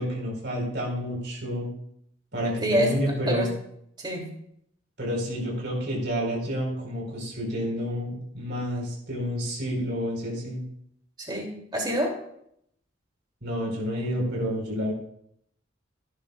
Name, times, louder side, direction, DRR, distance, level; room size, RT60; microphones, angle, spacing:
voice 1, 0.0-1.7 2.3-3.5 5.0-10.6 13.4-14.9, equal, 60° right, -1 dB, 4.8 m, -29 dB
voice 2, 2.6-3.0 3.3-3.5 4.0-4.3 11.2-12.1, equal, 25° right, 0 dB, 3.0 m, -26 dB
17.5 x 11.5 x 2.5 m, 0.71 s
head